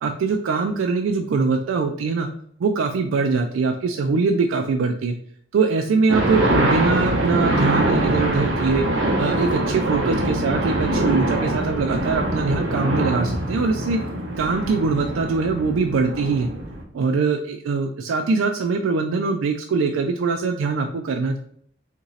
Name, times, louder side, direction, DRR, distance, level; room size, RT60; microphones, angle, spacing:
voice 1, 0.0-2.3 2.6-5.1 5.5-8.8 9.2-14.0 14.4-16.5 16.9-21.4, right 4 dB, 90° right, 4 dB, 0.4 m, -22 dB
sound 1, 6.1-16.8, right 1 dB, 65° right, 0.7 m, -23 dB
2.9 x 2.6 x 4.0 m, 0.63 s
head